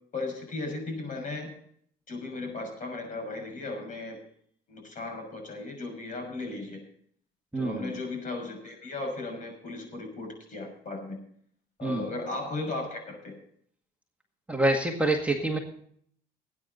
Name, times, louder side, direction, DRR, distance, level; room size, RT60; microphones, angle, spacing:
voice 1, 0.1-1.6 2.1-4.2 4.7-6.8 7.6-11.2 11.8-13.4, left 2 dB, 50° left, 4 dB, 6.2 m, -36 dB
voice 2, 7.5-8.0 11.8-12.1 14.5-15.6, right 2 dB, 10° right, 1 dB, 1.9 m, -26 dB
19.5 x 9.4 x 4.0 m, 0.62 s
cardioid pair, 110°, 17 cm